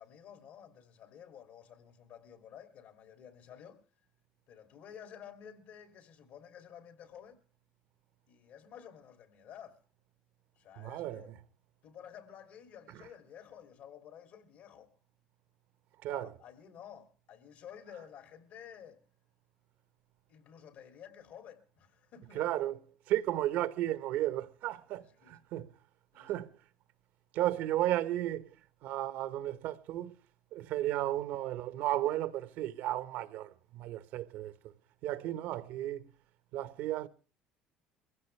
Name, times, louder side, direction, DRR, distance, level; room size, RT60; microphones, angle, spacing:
voice 1, 0.0-3.8 4.5-7.4 8.3-9.8 10.6-11.3 11.8-14.9 16.1-19.0 20.3-22.5 25.0-25.4 26.1-26.4 35.2-35.4, left 8 dB, 65° left, 3.0 m, -52 dB
voice 2, 10.8-11.3 16.0-16.3 22.3-22.8 23.1-25.7 26.2-26.6 27.3-28.5 28.8-30.2 30.5-34.5 35.0-36.1 36.5-37.1, right 14 dB, 75° right, 1.3 m, -34 dB
22.5 x 16.0 x 3.3 m
supercardioid pair, 95°, 3 cm